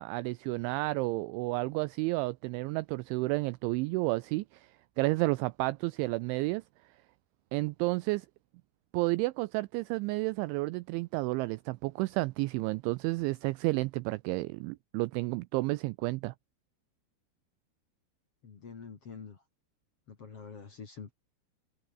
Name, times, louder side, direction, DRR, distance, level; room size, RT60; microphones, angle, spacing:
voice 1, 0.0-4.7 5.0-6.6 7.5-8.3 8.9-16.3, right 22 dB, 85° right, 2.7 m, -31 dB
voice 2, 18.4-19.4 20.1-21.1, left 5 dB, 40° left, 2.6 m, -46 dB
omnidirectional pair, 5.9 m